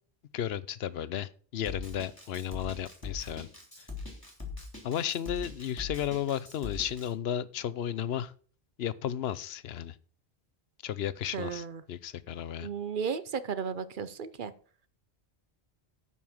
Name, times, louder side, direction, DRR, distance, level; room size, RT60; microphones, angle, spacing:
voice 1, 0.3-3.5 3.8-3.9 4.8-8.3 8.8-10.0 10.8-12.7, left 10 dB, 75° left, 0.9 m, -34 dB
Drum kit, 1.7-7.1, left 4 dB, 20° left, 3.4 m, -41 dB
voice 2, 11.3-11.8 12.6-14.5, right 6 dB, 55° right, 0.8 m, -34 dB
9.4 x 5.6 x 7.1 m
omnidirectional pair, 1.1 m